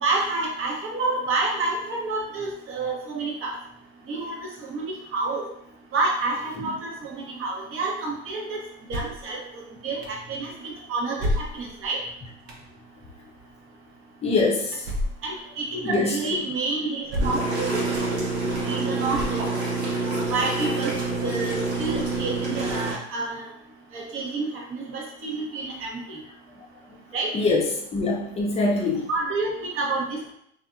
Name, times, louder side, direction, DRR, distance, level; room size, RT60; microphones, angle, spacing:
voice 1, 0.0-3.6 4.1-5.4 5.9-8.6 8.9-9.4 9.8-12.0 15.2-18.2 18.7-19.4 20.0-20.9 21.2-23.4 23.9-26.2 27.1-27.3 29.1-30.3, right 3 dB, 40° right, -1 dB, 0.9 m, -29 dB
sound 1, 8.9-9.3 10.0-10.1 11.2-11.9 12.5-12.6 14.8-15.3 15.9-16.0 17.1-17.5 18.0-18.1 19.1-19.7, left 1 dB, 70° right, 0.8 m, -29 dB
voice 2, 14.2-14.8 15.8-16.4 27.3-27.6 27.9-29.1, left 3 dB, 20° left, -1 dB, 0.6 m, -23 dB
sound 2, 17.2-22.9, right 3 dB, 85° right, 1.1 m, -27 dB
2.6 x 2.5 x 2.3 m, 0.70 s
hypercardioid pair, 95°, 33 cm